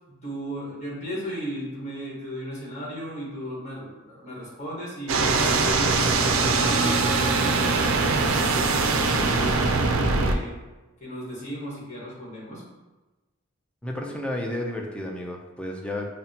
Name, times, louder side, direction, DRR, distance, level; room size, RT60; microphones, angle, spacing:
voice 1, 0.1-5.9 6.3-10.6 11.0-12.6, equal, 35° left, -5 dB, 1.3 m, -36 dB
sound 1, 5.1-10.3, right 3 dB, 75° right, 0.4 m, -22 dB
voice 2, 13.8-16.1, left 1 dB, 5° left, 0 dB, 0.4 m, -32 dB
5.5 x 2.1 x 2.7 m, 1.1 s
head